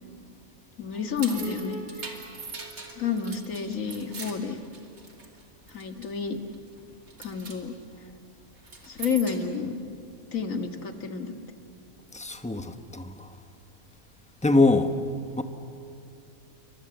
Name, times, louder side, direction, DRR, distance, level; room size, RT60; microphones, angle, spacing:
voice 1, 0.8-2.2 3.0-4.6 5.7-6.4 7.2-7.7 8.9-9.8 10.2-11.4, left 6 dB, 65° left, 2.1 m, -30 dB
sound 1, 0.9-5.4 5.7-6.2 6.5-6.8 7.1-7.6 8.6-9.5, right 3 dB, 75° right, 3.1 m, -41 dB
Piano, 1.3-4.6, equal, 40° right, 4.2 m, -45 dB
voice 2, 12.1-13.3 14.4-14.9 15.4-15.5, left 2 dB, 5° left, 1.0 m, -23 dB
28.5 x 24.0 x 8.0 m
omnidirectional pair, 1.5 m